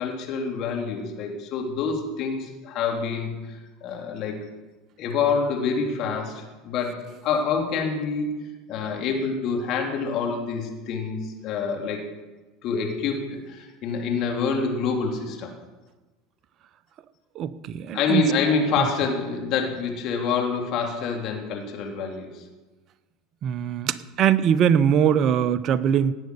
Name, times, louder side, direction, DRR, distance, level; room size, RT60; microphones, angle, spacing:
voice 1, 0.0-4.4 5.0-8.3 8.7-12.0 12.6-15.5 17.9-22.4, left 5 dB, 55° left, 2 dB, 3.4 m, -27 dB
voice 2, 17.4-18.3 18.8-18.9 23.4-26.1, right 8 dB, 50° right, 15 dB, 0.8 m, -21 dB
18.0 x 7.8 x 6.9 m, 1.2 s
hypercardioid pair, 80°, 0 cm